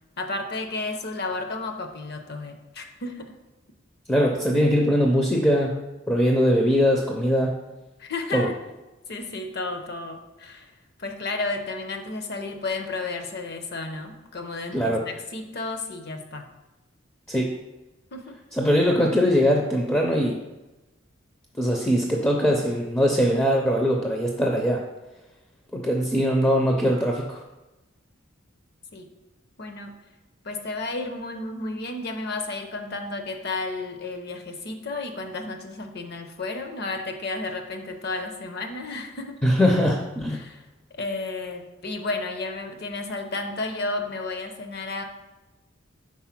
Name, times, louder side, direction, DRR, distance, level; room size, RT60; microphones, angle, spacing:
voice 1, 0.2-3.3 8.0-8.5 9.1-10.7 11.0-16.4 18.1-18.4 28.9-29.1 29.6-29.9 30.4-39.4 40.3-40.6 40.9-45.0, left 3 dB, 50° left, 5 dB, 0.7 m, -32 dB
voice 2, 4.1-5.8 6.1-7.6 8.3-8.5 14.7-15.1 17.3-17.6 18.5-20.4 21.6-24.8 25.7-27.4 39.4-40.4, equal, 10° left, 0 dB, 0.4 m, -21 dB
4.7 x 4.3 x 5.8 m, 1.1 s
head